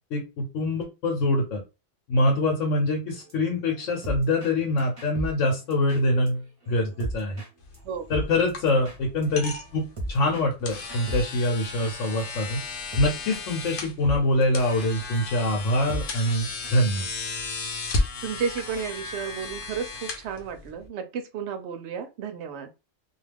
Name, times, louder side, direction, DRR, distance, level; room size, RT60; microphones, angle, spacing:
voice 1, 0.1-1.6 2.1-7.4 8.1-9.8 10.1-12.6 13.0-17.1, left 1 dB, 85° left, 1.1 m, -24 dB
sound 1, 3.1-6.3 6.6-7.5 7.7-7.8 8.1-13.4 13.7-13.8 14.0-16.7, right 1 dB, 30° right, 0.7 m, -37 dB
sound 2, 7.6-20.9, left 3 dB, 55° left, 0.7 m, -35 dB
voice 2, 18.2-22.7, right 6 dB, 70° right, 0.8 m, -32 dB
2.3 x 2.3 x 3.3 m
omnidirectional pair, 1.3 m